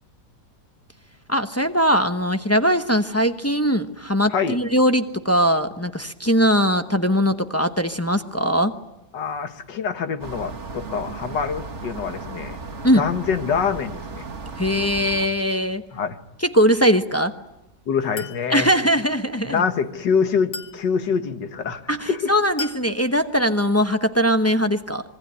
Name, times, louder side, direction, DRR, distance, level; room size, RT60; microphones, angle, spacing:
voice 1, 1.3-8.7 12.8-13.0 14.6-15.8 16.4-17.3 18.5-19.6 21.9-25.0, equal, 10° left, 7 dB, 0.7 m, -20 dB
voice 2, 9.1-12.6 13.0-14.2 15.9-16.2 17.9-18.7 19.5-22.3, left 6 dB, 80° left, 9 dB, 2.0 m, -25 dB
Forest Day roadhumm birds, 10.2-15.3, right 4 dB, 40° right, 1.8 m, -35 dB
Chink clink, 18.2-18.5 20.5-20.9 22.6-22.9, left 3 dB, 55° left, 2.1 m, -34 dB
26.0 x 22.5 x 9.6 m, 0.93 s
omnidirectional pair, 1.9 m